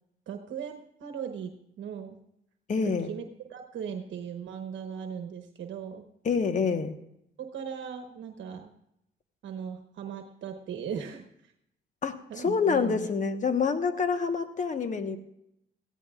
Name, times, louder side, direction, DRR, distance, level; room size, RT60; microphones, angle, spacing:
voice 1, 0.3-1.5 1.8-2.2 2.8-6.0 7.4-8.7 9.4-11.5 12.3-13.1, right 7 dB, 70° right, 5 dB, 1.2 m, -38 dB
voice 2, 2.7-3.1 6.2-6.9 12.0-15.2, left 5 dB, 40° left, 8 dB, 1.3 m, -27 dB
20.5 x 15.0 x 2.5 m, 0.79 s
cardioid pair, 90°, 20 cm